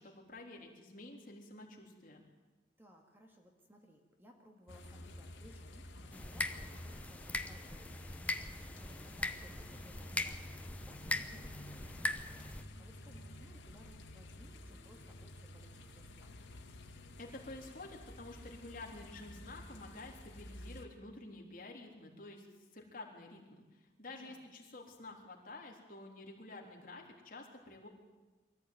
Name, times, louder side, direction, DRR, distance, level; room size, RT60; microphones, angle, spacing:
voice 1, 0.0-2.2 17.2-22.5 22.7-23.4 23.7-27.9, left 2 dB, 45° left, 0 dB, 3.7 m, -50 dB
voice 2, 2.8-12.1 12.7-16.3 24.2-24.5, equal, 10° right, 2 dB, 2.1 m, -61 dB
sound 1, 4.7-20.9, left 1 dB, 85° left, 2.1 m, -51 dB
sound 2, 6.1-12.6, left 1 dB, 10° left, 0.8 m, -41 dB
23.5 x 14.5 x 9.4 m, 1.2 s
head